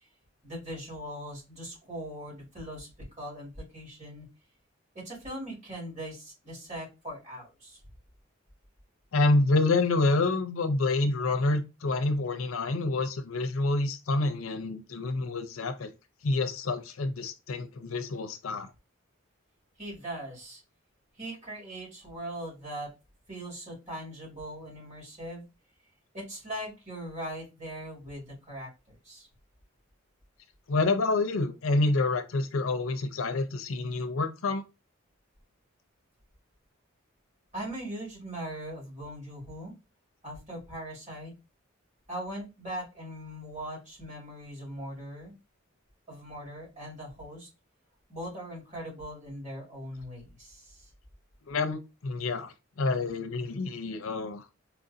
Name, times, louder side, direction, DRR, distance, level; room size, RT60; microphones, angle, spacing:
voice 1, 0.4-4.3 4.9-7.8 19.8-20.6 21.2-22.9 23.3-25.5 26.1-29.3 37.5-39.7 40.2-41.3 42.1-45.3 46.1-47.5 48.1-50.9, right 1 dB, 35° right, 2.4 m, -40 dB
voice 2, 9.1-15.9 16.2-18.7 30.7-34.6 51.5-54.5, left 2 dB, 80° left, 0.5 m, -28 dB
4.4 x 2.5 x 2.7 m
head